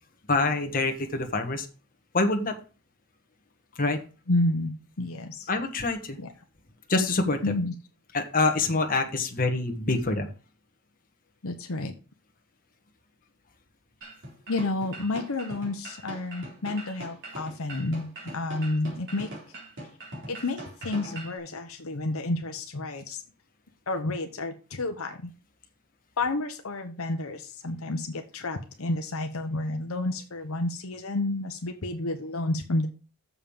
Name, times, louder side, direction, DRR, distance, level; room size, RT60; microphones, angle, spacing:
voice 1, 0.3-1.7 2.1-2.6 3.7-4.0 5.5-6.2 6.9-7.4 8.1-10.3, left 3 dB, 40° left, 4 dB, 1.4 m, -25 dB
voice 2, 4.3-4.7 5.0-5.5 6.2-6.3 7.4-7.7 11.4-11.9 14.5-19.3 20.3-23.2 23.9-25.3 26.2-32.9, left 2 dB, 65° left, 5 dB, 1.0 m, -30 dB
sound 1, 14.0-21.4, right 1 dB, 55° right, 3.9 m, -42 dB
7.2 x 5.6 x 7.0 m, 0.35 s
head